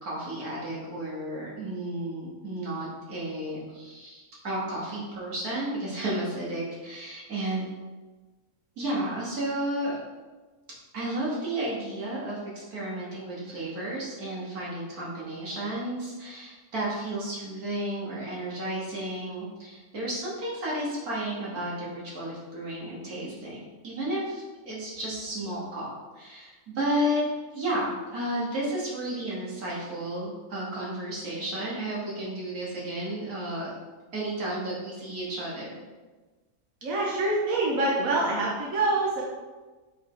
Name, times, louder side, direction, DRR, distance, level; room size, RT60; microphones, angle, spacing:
voice 1, 0.0-7.6 8.8-10.0 10.9-25.9 26.2-27.3 27.5-33.8 34.1-35.8, right 1 dB, 85° right, -6 dB, 2.5 m, -32 dB
voice 2, 36.8-39.2, right 2 dB, 65° right, -3 dB, 1.4 m, -25 dB
5.6 x 5.3 x 4.8 m, 1.3 s
omnidirectional pair, 1.5 m